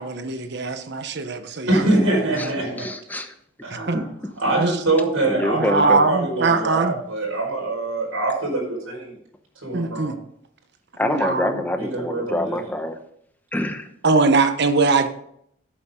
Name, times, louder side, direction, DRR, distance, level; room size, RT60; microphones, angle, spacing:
voice 1, 0.0-1.8 2.4-2.5 3.9-4.0 4.6-4.7 5.5-6.9 9.7-10.2 11.0-11.6 14.0-15.1, right 3 dB, 55° right, 1.0 m, -21 dB
voice 2, 1.7-2.9 3.7-3.9 4.4-9.1 9.6-10.2 11.8-12.6, right 2 dB, 85° right, 5.1 m, -24 dB
voice 3, 2.8-3.3 3.9-4.0 5.3-6.1 11.0-13.0 13.5-13.9, left 1 dB, 10° left, 0.9 m, -25 dB
11.5 x 8.5 x 3.8 m
head